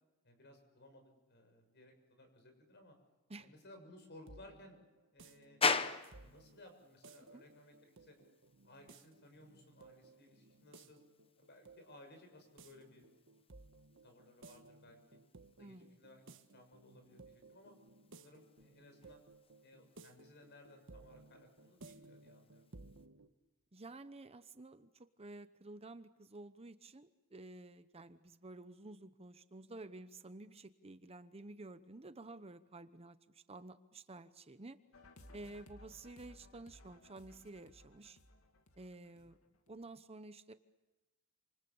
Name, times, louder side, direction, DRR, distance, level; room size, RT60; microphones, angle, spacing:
voice 1, 0.2-3.0 3.4-4.8 5.1-5.6 6.1-8.2 8.6-11.0 11.4-13.0 14.0-15.2 15.5-16.2 16.5-17.8 18.2-19.2 19.6-22.6 39.1-39.3, left 1 dB, 55° left, 6 dB, 6.9 m, -60 dB
sound 1, 3.8-23.3, right 2 dB, 65° right, 1.5 m, -60 dB
sound 2, 5.6-23.1, left 4 dB, 25° left, 1.2 m, -45 dB
voice 2, 15.6-16.0 23.7-34.8 35.3-38.2 38.8-39.4 39.7-40.5, right 2 dB, 30° right, 11 dB, 0.9 m, -52 dB
sound 3, 34.9-39.9, left 1 dB, 85° left, 2.5 m, -60 dB
28.5 x 27.5 x 7.1 m, 1.1 s
head